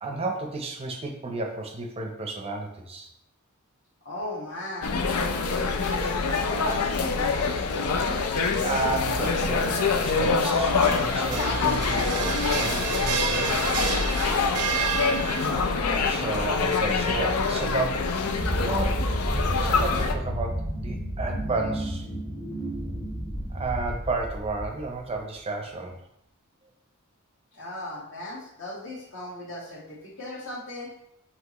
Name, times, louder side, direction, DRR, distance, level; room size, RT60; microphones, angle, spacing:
voice 1, 0.0-3.1 8.6-13.8 16.0-18.1 18.6-22.1 23.5-26.0, right 3 dB, 25° right, 3 dB, 0.5 m, -32 dB
voice 2, 4.0-8.0 27.5-30.9, left 1 dB, 65° left, -4 dB, 1.5 m, -38 dB
sound 1, 4.8-20.1, left 4 dB, 90° left, 0.5 m, -25 dB
sound 2, 10.6-15.7, right 7 dB, 90° right, 0.4 m, -31 dB
sound 3, 18.4-25.2, equal, 15° left, 0.7 m, -31 dB
5.8 x 2.9 x 3.0 m, 0.78 s
head